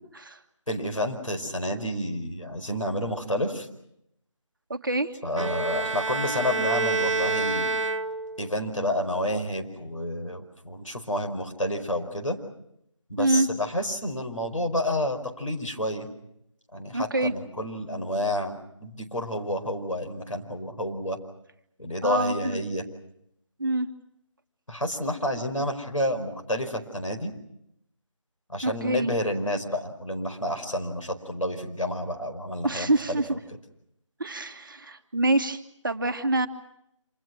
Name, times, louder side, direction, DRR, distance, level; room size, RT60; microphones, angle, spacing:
voice 1, 0.7-3.7 5.2-7.7 8.4-12.4 13.1-16.1 16.7-21.2 21.8-22.8 24.7-27.3 28.5-33.2, left 1 dB, 80° left, 3 dB, 5.0 m, -30 dB
voice 2, 4.7-5.2 13.2-13.5 16.9-17.3 22.0-22.6 23.6-23.9 28.6-29.1 32.6-33.3 34.2-36.5, right 2 dB, 40° right, 6 dB, 1.5 m, -26 dB
Bowed string instrument, 5.4-8.5, right 3 dB, 70° right, 1.3 m, -27 dB
27.5 x 27.0 x 6.2 m, 0.77 s
figure-of-eight pair, 160°, 17 cm